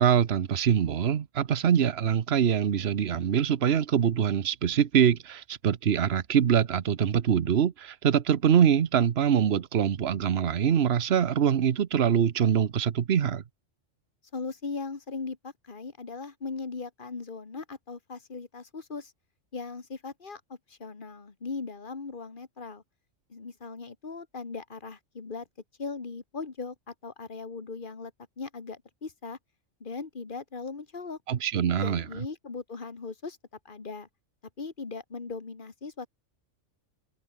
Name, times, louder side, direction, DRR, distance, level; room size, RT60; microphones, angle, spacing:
voice 1, 0.0-13.4 31.3-32.0, right 8 dB, 55° right, 1.1 m, -24 dB
voice 2, 14.3-19.1 19.5-22.8 23.3-25.5 25.8-28.1 28.4-29.4 29.8-31.2 31.8-33.4 33.7-34.1 34.6-36.1, left 4 dB, 40° left, 2.0 m, -38 dB
omnidirectional pair, 1.3 m